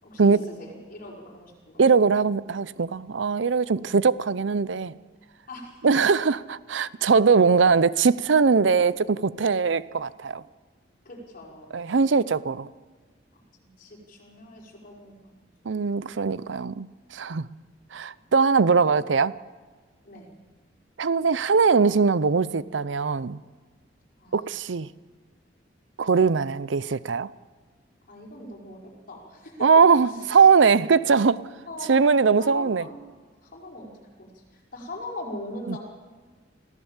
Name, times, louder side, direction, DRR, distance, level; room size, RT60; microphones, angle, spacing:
voice 1, 0.0-1.8 3.7-3.9 5.5-5.9 10.3-10.4 11.1-11.8 13.3-15.3 18.1-18.2 20.0-20.3 24.2-24.4 28.1-29.7 30.1-30.5 31.7-33.0 33.4-33.9 34.2-35.8, left 1 dB, 50° left, 5.2 m, -41 dB
voice 2, 1.8-4.9 5.8-10.4 11.7-12.7 15.6-16.9 17.1-17.5 17.9-19.3 21.0-23.4 24.3-24.9 26.0-27.3 29.6-31.4 31.9-32.8 35.7-35.8, right 5 dB, 80° right, 0.6 m, -21 dB
25.5 x 16.0 x 7.3 m
head